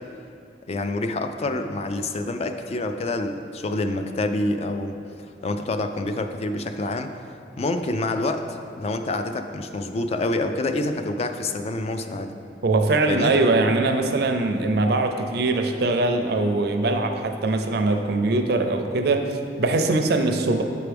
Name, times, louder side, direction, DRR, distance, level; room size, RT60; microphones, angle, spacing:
voice 1, 0.7-7.1 7.6-12.3 13.1-13.3, left 2 dB, 35° left, 7 dB, 0.3 m, -27 dB
voice 2, 12.6-20.6, right 2 dB, 65° right, 5 dB, 0.5 m, -22 dB
8.2 x 4.6 x 3.4 m, 2.4 s
head